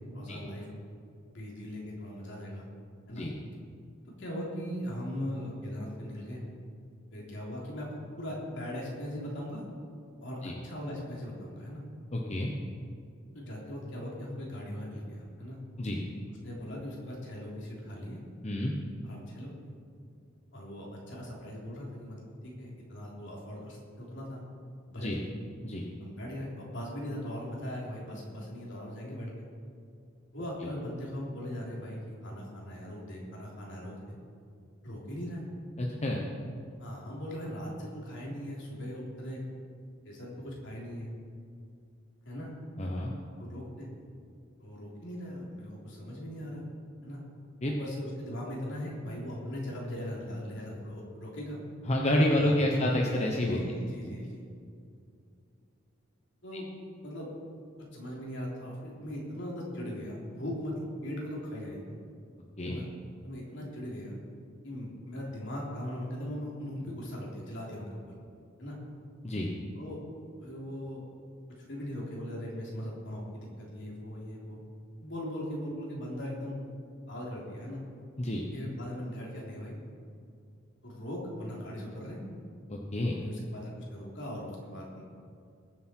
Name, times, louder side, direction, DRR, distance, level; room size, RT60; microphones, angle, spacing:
voice 1, 0.1-0.7 1.3-2.7 3.1-3.2 4.0-6.4 7.1-9.6 10.2-11.8 13.3-15.6 16.4-18.2 19.0-19.5 20.5-24.4 24.9-25.3 26.0-29.4 30.3-34.2 34.8-35.4 36.8-39.4 40.0-41.1 42.2-42.5 43.4-43.9 44.6-46.6 47.0-47.2 47.6-51.6 52.4-52.7 53.4-54.4 56.4-56.7 57.0-57.3 57.8-60.7 61.0-61.8 62.7-62.8 63.2-64.2 64.6-68.1 68.6-68.8 69.7-70.0 70.4-71.0 71.7-74.6 75.0-76.6 77.1-77.8 78.5-79.8 80.8-82.2 83.2-85.0, equal, 65° left, -3 dB, 3.3 m, -39 dB
voice 2, 12.1-12.5 15.8-16.0 18.4-18.7 25.0-25.2 25.6-25.9 35.8-36.2 42.8-43.1 47.6-47.7 51.9-53.6 54.0-54.3 62.6-62.8 69.2-69.5 78.2-78.4 82.7-83.2, left 1 dB, 35° left, -1 dB, 1.1 m, -29 dB
20.5 x 7.6 x 4.6 m, 2.3 s
head